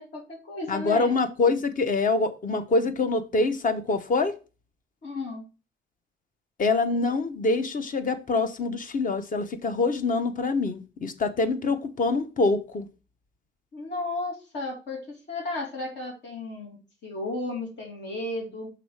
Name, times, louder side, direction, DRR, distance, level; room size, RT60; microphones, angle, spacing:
voice 1, 0.0-1.2 5.0-5.4 6.9-7.1 13.7-18.7, left 2 dB, 65° left, 2.7 m, -34 dB
voice 2, 0.7-4.3 6.6-12.9, left 3 dB, 45° left, 1.0 m, -25 dB
6.0 x 3.9 x 4.8 m
cardioid pair, 90°, 20 cm